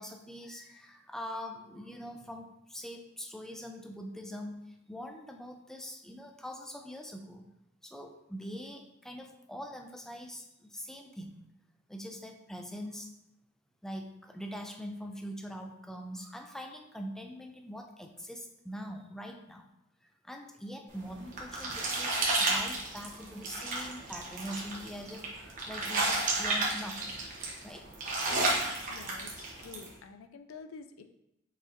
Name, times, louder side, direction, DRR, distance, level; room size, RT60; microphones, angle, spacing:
voice 1, 0.0-7.5 7.8-11.4 11.9-13.1 13.8-19.7 20.0-27.2 27.6-27.9, equal, ahead, 3 dB, 0.3 m, -43 dB
sound 1, 21.0-29.9, right 2 dB, 40° right, 0.9 m, -32 dB
voice 2, 28.9-31.0, left 5 dB, 90° left, 8 dB, 0.4 m, -49 dB
5.0 x 4.1 x 2.6 m, 0.85 s
head